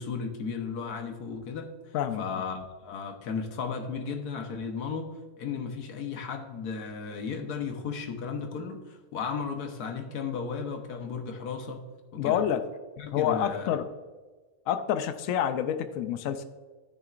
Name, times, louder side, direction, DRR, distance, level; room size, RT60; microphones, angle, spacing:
voice 1, 0.0-11.8 12.1-12.4 13.0-13.8, left 5 dB, 85° left, 5 dB, 1.5 m, -35 dB
voice 2, 12.2-12.6 13.1-13.9 14.7-16.4, left 9 dB, 70° left, 9 dB, 0.9 m, -28 dB
13.5 x 6.7 x 2.5 m, 1.4 s
omnidirectional pair, 1.6 m